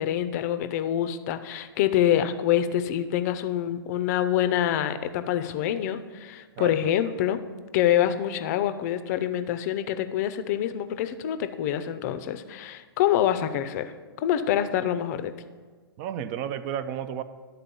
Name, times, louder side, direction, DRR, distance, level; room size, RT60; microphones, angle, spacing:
voice 1, 0.0-7.4 7.7-15.4, left 11 dB, 45° left, 11 dB, 0.5 m, -26 dB
voice 2, 6.6-6.9 16.0-17.2, right 10 dB, 35° right, 13 dB, 0.4 m, -32 dB
11.0 x 4.1 x 5.4 m, 1.5 s
figure-of-eight pair, 115°, 13 cm